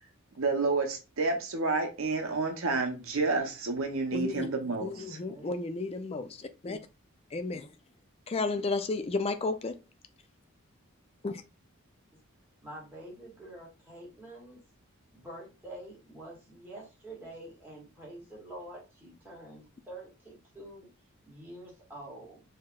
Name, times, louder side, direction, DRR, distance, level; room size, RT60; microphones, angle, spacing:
voice 1, 0.4-5.2, right 3 dB, 65° right, 0.7 m, -30 dB
voice 2, 4.1-4.5 4.8-6.8 7.3-7.7 8.3-9.7 11.2-11.4, left 3 dB, 25° left, 0.3 m, -33 dB
voice 3, 5.3-5.7 12.6-14.6 15.1-20.9 21.3-22.4, right 1 dB, 10° right, 1.6 m, -47 dB
4.7 x 2.9 x 2.3 m
head